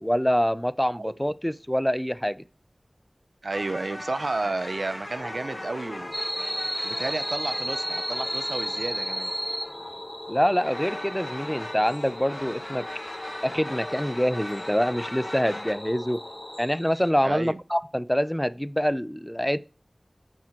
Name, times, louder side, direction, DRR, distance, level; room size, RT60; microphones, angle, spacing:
voice 1, 0.0-2.4 10.3-12.9 13.4-16.2 16.6-19.6, equal, 5° left, 0.3 m, -25 dB
voice 2, 3.4-6.1 6.8-9.3 17.2-17.6, right 3 dB, 85° right, 0.4 m, -32 dB
sound 1, 3.5-10.0 10.6-15.7, left 1 dB, 30° left, 0.8 m, -39 dB
sound 2, 5.2-16.6, left 2 dB, 85° left, 0.4 m, -41 dB
sound 3, 6.1-17.1, equal, 20° right, 1.0 m, -35 dB
5.9 x 4.6 x 4.3 m
wide cardioid pair, 50°, 0 cm